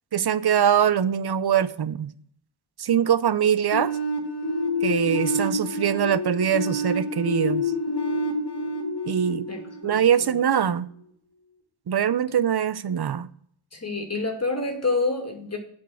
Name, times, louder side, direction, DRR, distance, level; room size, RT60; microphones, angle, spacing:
voice 1, 0.1-2.1 2.8-4.0 4.8-7.7 9.1-9.5 9.8-10.9 11.9-13.3, right 8 dB, 55° right, 0.6 m, -23 dB
sound 1, 3.7-10.5, left 1 dB, 55° left, 1.9 m, -28 dB
voice 2, 9.5-9.9 10.2-10.3 13.7-15.6, left 3 dB, 30° left, 2.1 m, -28 dB
8.9 x 5.3 x 6.9 m
wide cardioid pair, 105°, 48 cm